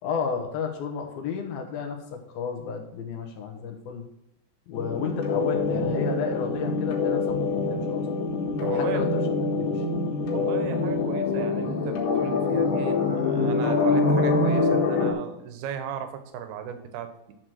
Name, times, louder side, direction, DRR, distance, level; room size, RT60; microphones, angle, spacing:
voice 1, 0.0-4.0 4.7-8.1 8.6-9.8, left 6 dB, 75° left, 3 dB, 3.0 m, -32 dB
sound 1, 4.7-15.1, left 3 dB, 90° left, 3.7 m, -25 dB
voice 2, 8.6-9.0 10.3-17.3, right 8 dB, 90° right, 8 dB, 3.0 m, -36 dB
12.0 x 4.6 x 6.4 m, 0.87 s
omnidirectional pair, 4.4 m